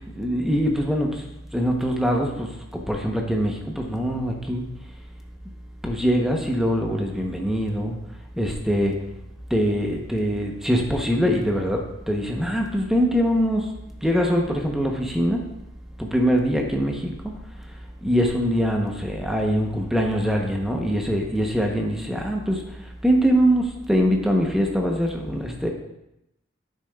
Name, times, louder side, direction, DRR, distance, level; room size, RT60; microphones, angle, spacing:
voice 1, 0.1-1.2 1.5-4.7 5.8-8.0 8.4-9.0 9.5-13.7 14.0-15.5 16.0-17.2 17.6-17.7 18.0-25.7, equal, ahead, 1 dB, 0.8 m, -23 dB
10.0 x 6.3 x 2.3 m, 0.86 s
head